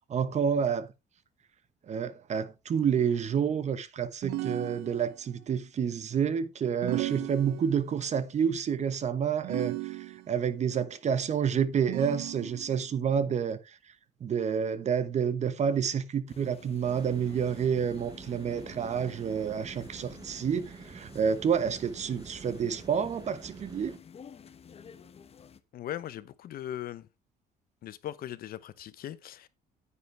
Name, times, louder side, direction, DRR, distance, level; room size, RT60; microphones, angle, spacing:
voice 1, 0.1-0.9 1.8-13.9 14.2-24.0, right 7 dB, 40° right, 1.1 m, -29 dB
sound 1, 4.2-5.4 6.8-8.0 9.4-10.5 11.9-12.9, right 20 dB, 85° right, 0.5 m, -35 dB
sound 2, 16.3-25.6, left 7 dB, 35° left, 1.0 m, -52 dB
sound 3, 16.8-24.0, right 5 dB, 25° right, 0.7 m, -48 dB
voice 2, 25.7-27.1 27.8-29.5, left 11 dB, 60° left, 0.9 m, -39 dB
9.6 x 8.4 x 3.3 m
cardioid pair, 110°, 17 cm